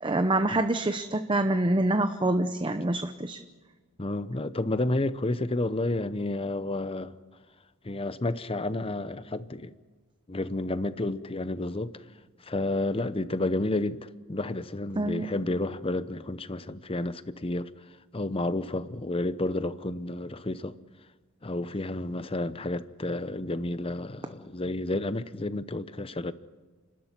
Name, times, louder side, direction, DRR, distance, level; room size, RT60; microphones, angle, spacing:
voice 1, 0.0-3.4 15.0-15.3, right 2 dB, 20° right, 0.8 m, -26 dB
voice 2, 4.0-7.2 7.8-9.7 10.3-12.0 12.4-20.8 21.4-26.3, left 2 dB, 25° left, 0.8 m, -31 dB
30.0 x 13.0 x 9.8 m
head